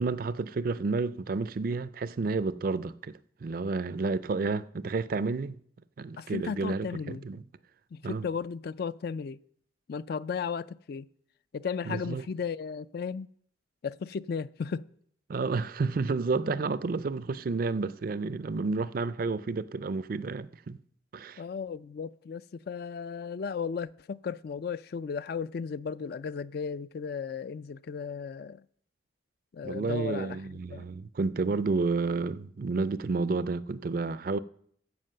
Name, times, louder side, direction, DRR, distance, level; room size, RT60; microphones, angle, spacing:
voice 1, 0.0-5.6 6.0-7.4 8.0-8.3 11.9-12.2 15.3-20.8 21.1-21.4 29.6-34.4, right 4 dB, 50° right, 0.4 m, -30 dB
voice 2, 6.2-7.2 7.9-9.4 9.9-11.1 11.5-13.3 13.8-14.8 16.3-16.5 21.4-28.6 29.5-30.9, left 6 dB, 55° left, 0.3 m, -35 dB
15.0 x 5.2 x 6.6 m
head